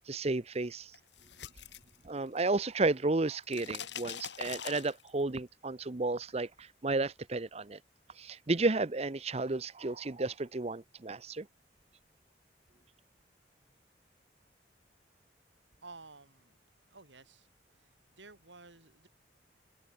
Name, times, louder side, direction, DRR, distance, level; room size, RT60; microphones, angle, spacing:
voice 1, 0.1-0.9 2.0-7.8 8.2-11.5, right 3 dB, 35° right, 0.8 m, -32 dB
sound 1, 0.9-2.6 2.9-5.4, left 8 dB, 75° left, 3.6 m, -43 dB
voice 2, 15.8-16.6 16.9-17.5 17.8-17.9 18.1-19.1, right 3 dB, 85° right, 4.7 m, -53 dB
open air
head